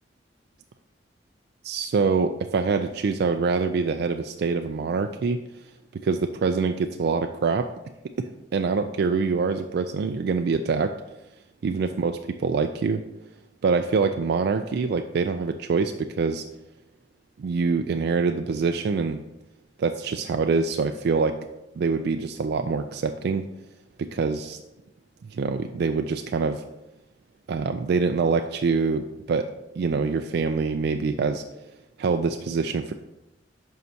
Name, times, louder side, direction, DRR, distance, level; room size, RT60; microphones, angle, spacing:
voice 1, 1.6-5.4 6.0-7.7 8.2-11.0 11.6-13.0 13.6-16.4 17.4-19.2 19.8-21.4 21.8-23.4 24.0-24.6 25.3-26.6 27.5-29.5 29.8-31.4 32.0-32.9, right 4 dB, 60° right, 6 dB, 0.3 m, -25 dB
9.3 x 5.7 x 2.8 m, 0.96 s
head